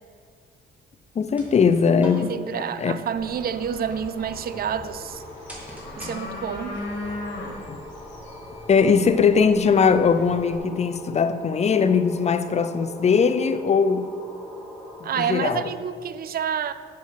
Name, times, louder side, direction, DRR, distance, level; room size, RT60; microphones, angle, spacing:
sound 1, 1.0-6.7, equal, 5° right, 2.4 m, -47 dB
voice 1, 1.2-2.9 6.0-6.2 7.7-7.8 8.7-14.1 15.2-15.7, left 6 dB, 35° left, 0.5 m, -20 dB
voice 2, 2.2-5.2 6.0-6.8 15.0-16.7, right 8 dB, 50° right, 0.5 m, -28 dB
sound 2, 3.1-10.6, left 2 dB, 65° left, 2.2 m, -38 dB
sound 3, 4.2-15.7, left 1 dB, 10° left, 1.7 m, -43 dB
7.6 x 6.4 x 5.8 m
cardioid pair, 90°, 20 cm